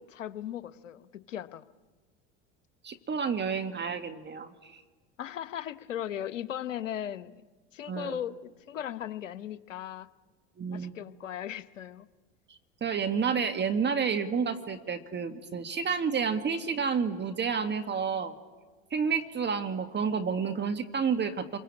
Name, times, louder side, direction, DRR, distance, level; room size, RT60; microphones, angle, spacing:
voice 1, 0.0-1.6 5.2-7.3 7.7-10.1 10.7-12.1, left 10 dB, 90° left, 14 dB, 1.1 m, -37 dB
voice 2, 2.8-4.8 7.9-8.2 10.6-10.9 12.8-18.3 18.9-21.6, right 6 dB, 30° right, 7 dB, 1.8 m, -30 dB
28.5 x 23.0 x 8.7 m, 1.3 s
hypercardioid pair, 85°, 37 cm